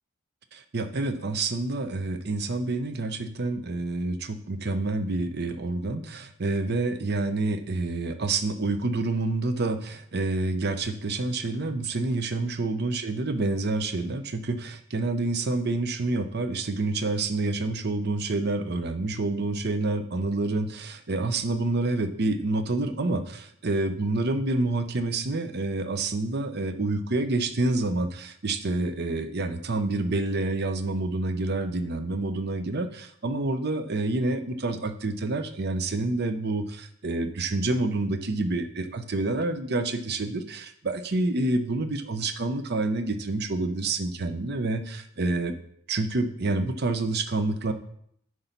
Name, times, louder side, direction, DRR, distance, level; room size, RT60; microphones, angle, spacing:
voice 1, 0.5-45.5 45.9-47.7, right 2 dB, 50° right, 9 dB, 0.7 m, -28 dB
9.5 x 4.0 x 5.8 m, 0.69 s
head